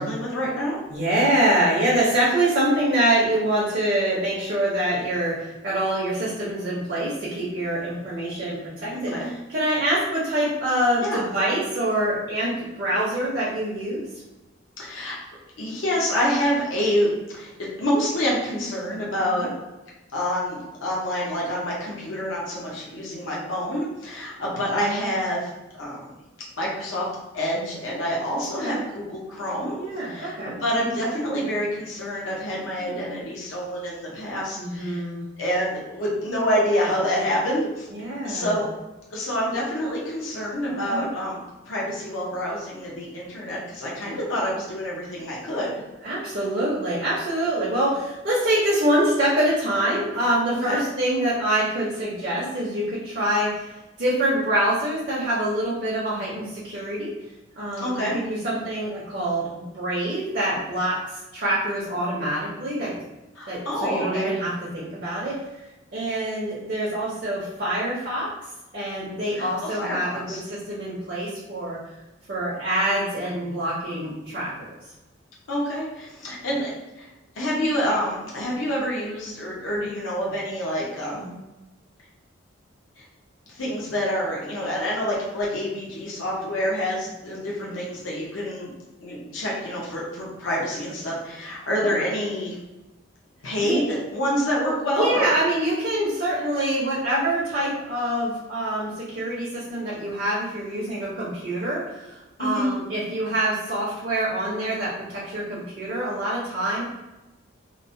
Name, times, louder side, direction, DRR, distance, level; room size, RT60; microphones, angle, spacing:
voice 1, 0.0-0.8 8.9-9.3 11.0-11.2 14.8-15.2 15.6-19.5 20.1-25.5 25.8-26.1 26.6-27.1 27.3-29.8 30.0-35.0 35.4-37.9 38.2-38.7 39.1-45.8 50.7-50.8 57.8-58.1 63.4-64.3 69.3-70.4 75.5-76.7 77.0-77.1 77.4-81.3 83.6-88.7 89.0-92.6 93.4-95.3 102.4-102.7, equal, 80° left, -5 dB, 0.7 m, -27 dB
voice 2, 0.9-14.0 19.2-19.5 28.6-28.8 29.8-30.6 32.8-33.0 34.6-35.2 37.9-38.6 40.7-41.1 46.0-53.7 54.0-57.1 57.6-63.0 63.5-65.4 65.9-68.3 68.7-71.8 72.3-74.7 81.1-81.4 87.6-87.8 91.8-92.0 93.6-93.8 94.9-106.8, right 1 dB, 50° right, -7 dB, 0.6 m, -25 dB
2.9 x 2.0 x 2.6 m, 1.0 s
head